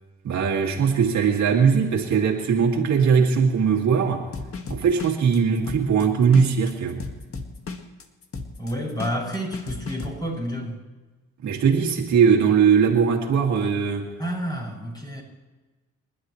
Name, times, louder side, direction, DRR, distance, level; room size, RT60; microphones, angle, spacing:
voice 1, 0.2-4.3 4.7-7.0 11.4-14.1, right 6 dB, 65° right, 0 dB, 2.3 m, -20 dB
sound 1, 4.3-10.1, left 4 dB, 50° left, 1.9 m, -35 dB
voice 2, 8.6-10.8 14.2-15.2, equal, 15° left, -1 dB, 6.6 m, -30 dB
28.5 x 11.5 x 3.2 m, 1.2 s
cardioid pair, 90°, 30 cm